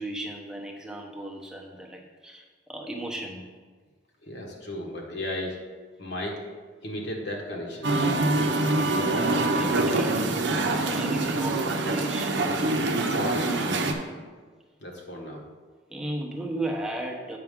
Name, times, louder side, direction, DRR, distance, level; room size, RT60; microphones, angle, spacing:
voice 1, 0.0-2.4 2.7-3.4 8.9-10.3 10.8-12.3 15.9-17.4, right 1 dB, 5° right, 0 dB, 0.7 m, -35 dB
voice 2, 4.2-5.6 6.0-6.4 6.8-8.1 13.2-13.7 14.8-15.4, left 1 dB, 55° left, -1 dB, 1.2 m, -34 dB
Musical instrument, 7.8-13.9, right 2 dB, 60° right, 0.7 m, -25 dB
8.0 x 5.9 x 3.6 m, 1.5 s
head